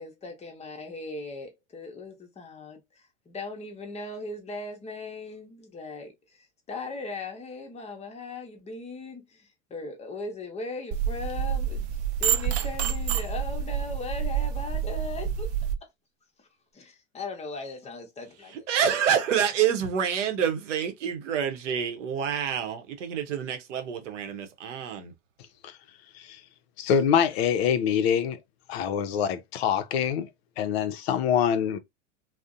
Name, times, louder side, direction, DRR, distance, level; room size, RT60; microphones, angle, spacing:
voice 1, 0.0-15.5 16.4-16.5 16.7-18.6, left 3 dB, 15° left, 0.7 m, -38 dB
sound 1, 10.9-15.7, right 8 dB, 45° right, 0.5 m, -28 dB
voice 2, 18.7-25.1, right 8 dB, 75° right, 0.7 m, -27 dB
voice 3, 26.8-28.4 28.7-30.3 30.6-31.8, left 8 dB, 55° left, 0.5 m, -25 dB
2.5 x 2.0 x 2.4 m
hypercardioid pair, 95°, 37 cm